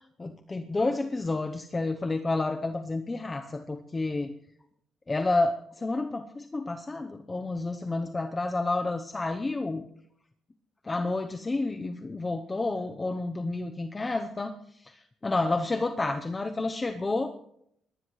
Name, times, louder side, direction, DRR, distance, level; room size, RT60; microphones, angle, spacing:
voice 1, 0.2-4.3 5.1-9.9 10.8-17.3, left 2 dB, 20° left, 6 dB, 0.8 m, -30 dB
24.0 x 19.0 x 3.2 m, 0.72 s
cardioid pair, 135°, 0 cm